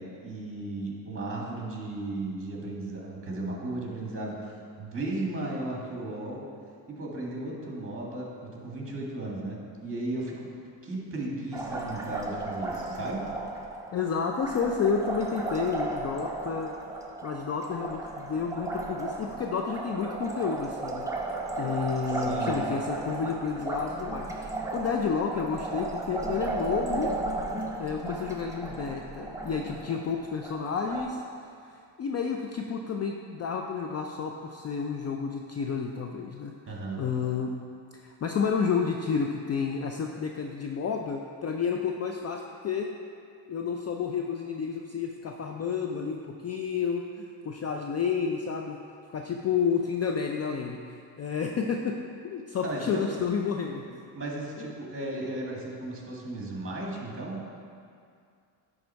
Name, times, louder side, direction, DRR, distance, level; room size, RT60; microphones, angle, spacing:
voice 1, 0.0-6.5 6.9-10.5 10.8-13.3 22.1-22.6 36.7-37.0 52.6-53.0 54.1-57.5, right 2 dB, 25° right, -2 dB, 1.9 m, -35 dB
Liquid, 11.5-31.0, right 2 dB, 5° right, 0.9 m, -35 dB
voice 2, 13.9-16.7 17.2-27.1 27.8-31.2 32.0-36.5 37.0-37.5 38.0-42.9 43.5-48.8 49.1-50.8 51.2-52.0 52.2-54.0 54.6-54.7, left 6 dB, 35° left, 2 dB, 0.4 m, -30 dB
10.5 x 3.6 x 4.5 m, 2.3 s
supercardioid pair, 85°, 49 cm